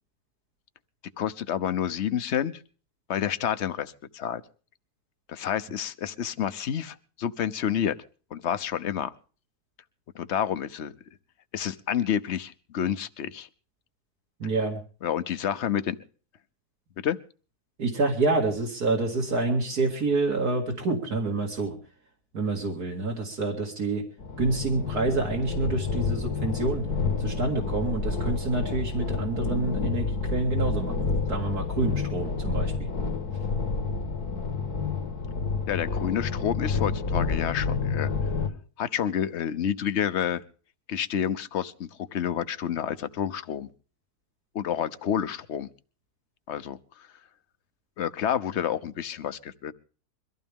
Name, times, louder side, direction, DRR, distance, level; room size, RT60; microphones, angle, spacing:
voice 1, 1.2-2.6 3.1-4.4 5.3-8.0 8.3-9.1 10.1-10.9 11.5-13.5 15.0-16.0 17.0-17.2 35.7-38.1 38.8-40.4 40.9-43.7 44.5-45.7 46.5-47.1 48.0-49.7, left 9 dB, 50° left, 15 dB, 1.0 m, -29 dB
voice 2, 14.4-14.8 17.8-21.8 22.3-24.0 24.4-26.9 27.2-32.9, right 3 dB, 75° right, 0 dB, 2.9 m, -27 dB
sound 1, 24.2-38.5, left 4 dB, 75° left, 2.2 m, -29 dB
23.0 x 15.0 x 3.6 m, 0.40 s
omnidirectional pair, 1.7 m